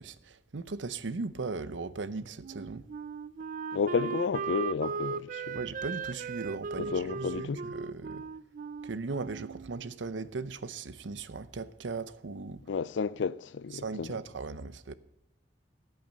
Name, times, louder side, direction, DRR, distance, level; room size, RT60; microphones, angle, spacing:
voice 1, 0.0-2.9 5.5-8.2 8.8-12.6 13.7-14.9, right 3 dB, 85° right, 0.7 m, -38 dB
Wind instrument woodwind instrument, 2.4-9.9, right 5 dB, 45° right, 0.4 m, -38 dB
voice 2, 3.7-5.6 6.8-7.6 12.7-14.2, left 5 dB, 85° left, 0.4 m, -32 dB
14.5 x 9.1 x 5.2 m
head